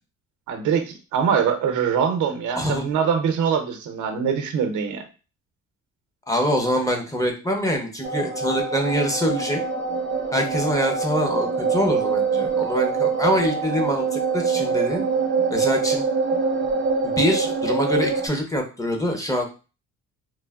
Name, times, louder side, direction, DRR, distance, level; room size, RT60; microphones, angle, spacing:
voice 1, 0.5-5.0, right 7 dB, 80° right, 6 dB, 0.6 m, -23 dB
voice 2, 2.6-2.9 6.3-9.6 10.3-15.0 15.5-16.0 17.0-19.5, equal, 10° left, 2 dB, 0.6 m, -24 dB
sound 1, 8.0-18.3, right 4 dB, 40° right, 0.5 m, -24 dB
3.1 x 2.0 x 2.3 m, 0.33 s
cardioid pair, 90°, 30 cm